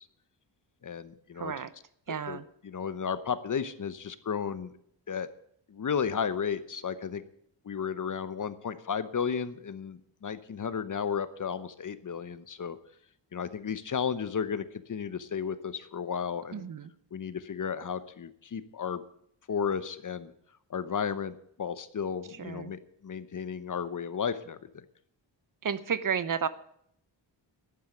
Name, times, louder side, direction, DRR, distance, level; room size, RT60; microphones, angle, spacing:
voice 1, 0.8-1.5 2.3-4.7 5.1-5.3 5.7-7.2 7.6-12.8 13.3-16.7 17.1-19.0 19.5-20.3 20.7-24.8, left 7 dB, 45° left, 13 dB, 1.0 m, -33 dB
voice 2, 1.4-1.7 2.1-2.4 16.5-16.9 22.4-22.7 25.6-26.5, right 7 dB, 45° right, 15 dB, 0.8 m, -32 dB
11.5 x 9.2 x 9.0 m, 0.70 s
wide cardioid pair, 140°, 44 cm